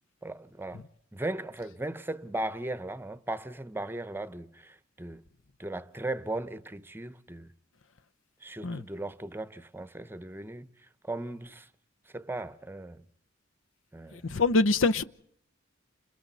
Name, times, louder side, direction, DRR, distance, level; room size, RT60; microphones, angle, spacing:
voice 1, 0.2-0.8 1.1-5.2 5.6-7.5 8.4-10.7 11.1-11.7 12.1-13.0 13.9-14.2, right 2 dB, 10° right, 0.8 m, -37 dB
voice 2, 14.3-15.0, left 3 dB, 80° left, 0.9 m, -24 dB
30.0 x 28.0 x 4.2 m
head